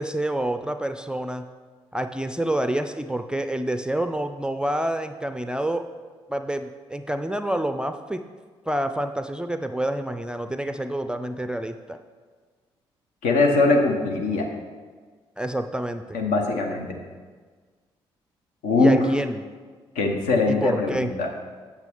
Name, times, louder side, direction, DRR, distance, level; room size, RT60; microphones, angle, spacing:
voice 1, 0.0-1.5 1.9-5.8 6.3-8.2 8.7-12.0 15.4-16.2 18.8-19.4 20.5-21.1, right 1 dB, 5° right, 8 dB, 0.4 m, -28 dB
voice 2, 13.2-14.5 16.1-17.0 18.6-19.0 19.9-21.3, left 3 dB, 65° left, 2 dB, 1.0 m, -21 dB
8.1 x 6.9 x 3.5 m, 1.5 s
figure-of-eight pair, 40°, 14 cm